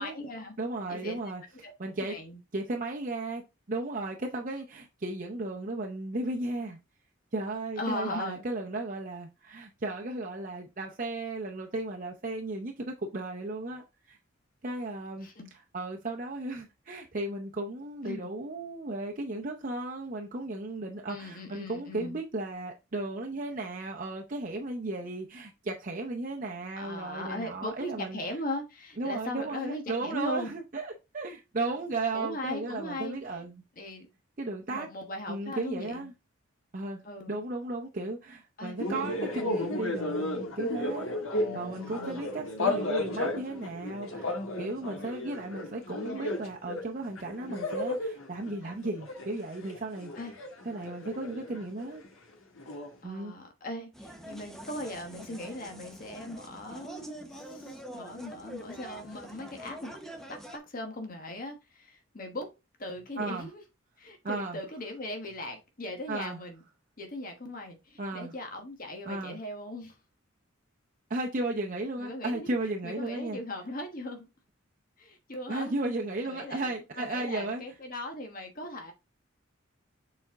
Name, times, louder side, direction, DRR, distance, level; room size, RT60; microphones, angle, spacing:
voice 1, 0.0-0.6 0.9-1.2 1.6-1.7 2.1-2.4 7.8-8.5 15.2-15.5 18.0-18.3 21.1-22.2 26.7-30.5 32.1-33.4 33.8-34.1 34.7-36.1 37.0-37.4 38.6-38.8 41.3-42.2 46.0-46.4 50.2-50.3 53.0-60.0 60.3-62.5 62.8-63.6 64.0-66.6 67.0-70.0 72.0-72.5 72.8-74.3 75.0-75.7 76.2-76.7 77.0-78.9, left 1 dB, 45° left, 1.2 m, -39 dB
voice 2, 0.6-2.2 2.5-3.4 3.7-6.8 7.3-14.2 14.6-15.3 15.7-28.2 29.0-33.6 34.4-34.9 35.3-36.1 36.7-41.1 41.5-50.1 50.6-52.0 53.0-53.3 63.2-63.5 64.2-64.6 66.1-66.4 68.0-68.3 69.1-69.4 71.1-73.4 75.5-77.6, right 2 dB, 40° right, 0.7 m, -35 dB
sound 1, 38.8-46.8 47.1-52.1 52.6-52.9, left 2 dB, 85° left, 1.5 m, -34 dB
sound 2, 53.9-60.6, equal, ahead, 0.8 m, -45 dB
7.0 x 4.3 x 3.5 m
head